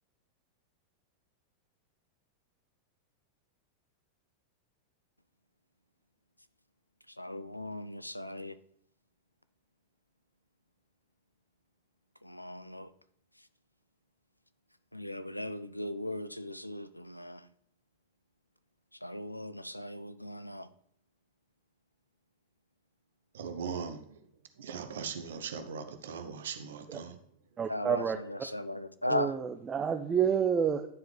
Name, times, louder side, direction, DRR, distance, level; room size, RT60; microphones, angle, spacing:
voice 1, 7.2-8.6 12.2-12.9 14.9-17.4 19.0-20.7 27.7-29.3, left 1 dB, 85° left, 0.3 m, -37 dB
voice 2, 23.3-24.3 24.6-27.2, right 6 dB, 60° right, 0.7 m, -39 dB
voice 3, 27.6-28.2 29.1-30.9, right 7 dB, 20° right, 0.5 m, -29 dB
9.9 x 4.7 x 3.2 m
figure-of-eight pair, 90°, 0 cm